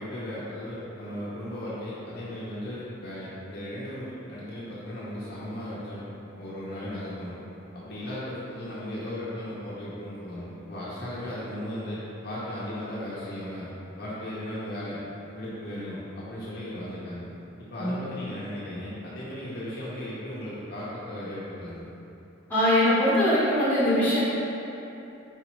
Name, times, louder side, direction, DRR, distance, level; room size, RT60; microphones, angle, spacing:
voice 1, 0.0-6.0 6.4-7.3 7.7-13.7 14.0-15.0 15.3-17.2 17.7-21.9, left 1 dB, 50° left, -8 dB, 0.7 m, -36 dB
voice 2, 22.5-24.2, left 1 dB, 10° left, -11 dB, 1.1 m, -22 dB
4.1 x 4.0 x 3.1 m, 2.9 s
head